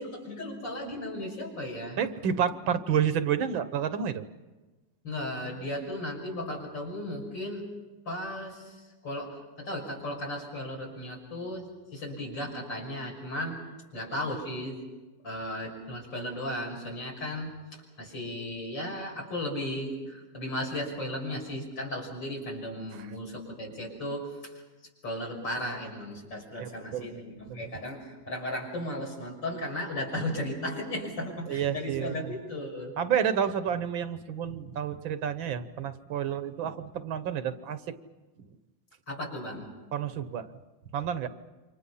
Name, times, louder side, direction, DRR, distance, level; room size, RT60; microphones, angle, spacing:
voice 1, 0.0-2.0 5.0-7.6 8.1-8.8 9.0-13.6 13.9-14.8 15.2-17.5 18.0-24.3 25.0-32.9 39.1-39.7, left 1 dB, 70° left, 0 dB, 6.6 m, -35 dB
voice 2, 2.0-4.2 26.6-27.1 27.5-27.7 31.5-32.3 33.0-37.8 39.9-40.5 40.9-41.3, right 8 dB, 90° right, 11 dB, 1.9 m, -30 dB
28.5 x 25.0 x 5.7 m, 1.2 s
omnidirectional pair, 2.1 m